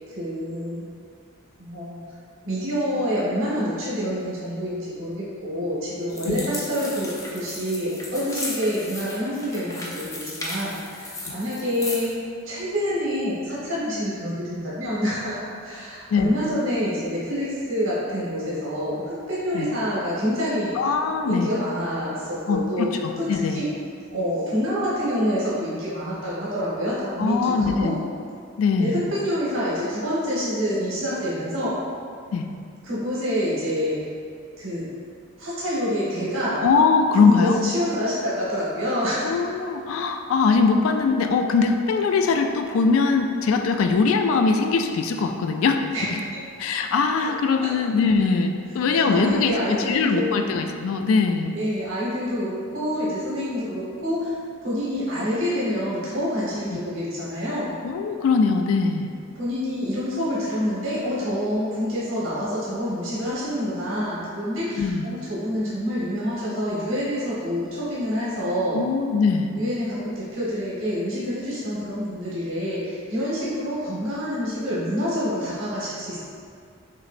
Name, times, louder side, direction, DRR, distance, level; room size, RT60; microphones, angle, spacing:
voice 1, 0.1-0.9 1.6-2.0 2.4-12.1 12.4-20.8 21.3-22.9 23.2-23.7 24.1-27.9 28.8-31.8 32.8-34.0 34.6-34.9 35.4-36.6 37.2-39.4 45.9-46.4 47.2-47.3 47.6-47.7 48.9-50.4 51.5-54.3 54.6-57.7 59.3-68.8 69.5-76.2, equal, 80° right, -8 dB, 1.2 m, -27 dB
sound 1, 6.1-12.1, left 2 dB, 15° left, 0.5 m, -35 dB
voice 2, 20.7-21.5 22.5-23.6 27.2-28.0 28.6-29.0 32.3-32.5 36.6-37.6 39.2-45.8 46.1-46.2 46.6-51.6 56.7-56.8 57.8-59.1 64.8-65.1 68.7-69.5, left 4 dB, 85° left, 5 dB, 0.3 m, -21 dB
5.6 x 3.1 x 2.5 m, 2.3 s
head